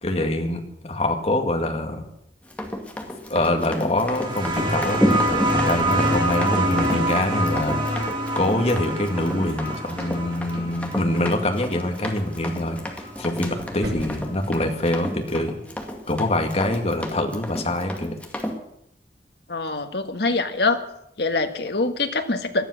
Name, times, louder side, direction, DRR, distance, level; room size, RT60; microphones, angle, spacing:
voice 1, 0.0-2.1 3.3-8.0 8.3-15.5 16.1-18.2, left 1 dB, 35° left, 4 dB, 2.1 m, -25 dB
Run, 2.5-18.6, equal, 10° left, 2.0 m, -30 dB
sound 1, 4.0-13.2 14.4-14.5, right 1 dB, 30° right, 3.3 m, -26 dB
sound 2, 8.3-15.4, equal, 85° right, 5.6 m, -44 dB
voice 2, 19.5-20.8 21.2-22.7, left 3 dB, 65° left, 7 dB, 1.5 m, -24 dB
18.0 x 12.5 x 6.4 m, 0.76 s
head